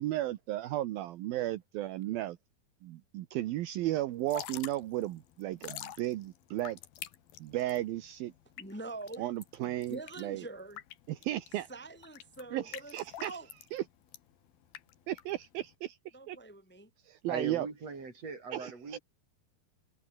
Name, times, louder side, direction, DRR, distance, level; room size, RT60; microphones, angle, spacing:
voice 1, 0.0-2.4 2.8-6.8 7.4-8.3 9.2-10.4 11.1-11.7 12.5-13.3 13.7-13.8 15.1-16.0 16.3-16.4 17.1-17.7 18.5-19.0, right 14 dB, 75° right, 2.7 m, -34 dB
Drip / Trickle dribble, 4.1-15.7, left 12 dB, 75° left, 3.3 m, -48 dB
voice 2, 8.6-9.3 9.6-10.8 11.7-13.5 16.1-16.9, right 2 dB, 5° left, 2.6 m, -45 dB
voice 3, 17.3-19.0, right 4 dB, 40° right, 6.0 m, -40 dB
omnidirectional pair, 4.5 m